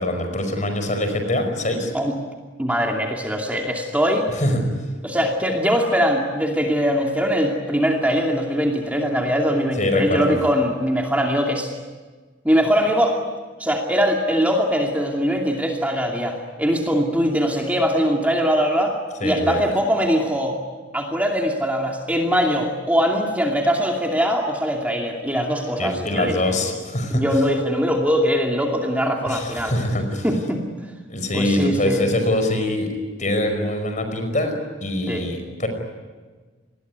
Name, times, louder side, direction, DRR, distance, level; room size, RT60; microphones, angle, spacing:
voice 1, 0.0-1.9 4.3-4.7 9.8-10.3 19.2-19.6 25.8-27.3 29.3-30.3 31.1-32.9 33.2-34.6 34.8-35.7, left 1 dB, 40° left, 7 dB, 5.3 m, -23 dB
voice 2, 2.6-4.3 5.0-11.7 12.4-13.2 13.6-19.0 19.2-20.6 20.9-26.7 27.1-29.7 30.2-30.6 31.3-32.0 35.1-35.3, equal, 10° right, 1 dB, 2.6 m, -21 dB
28.5 x 21.0 x 9.5 m, 1.4 s
head